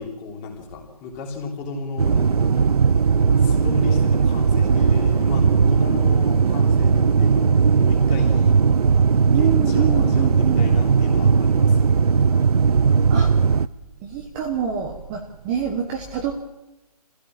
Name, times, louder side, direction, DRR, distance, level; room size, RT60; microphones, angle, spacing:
voice 1, 0.0-2.5 3.1-8.6 9.3-11.9, left 4 dB, 15° left, 1 dB, 3.1 m, -34 dB
sound 1, 2.0-13.7, right 5 dB, 70° right, 0.7 m, -18 dB
Acoustic guitar, 4.8-8.3, left 6 dB, 45° left, 2.0 m, -41 dB
voice 2, 9.3-10.7 13.1-13.6 14.0-16.4, right 8 dB, 15° right, 2 dB, 1.1 m, -27 dB
26.5 x 16.0 x 7.5 m, 0.99 s
hypercardioid pair, 165°, 21 cm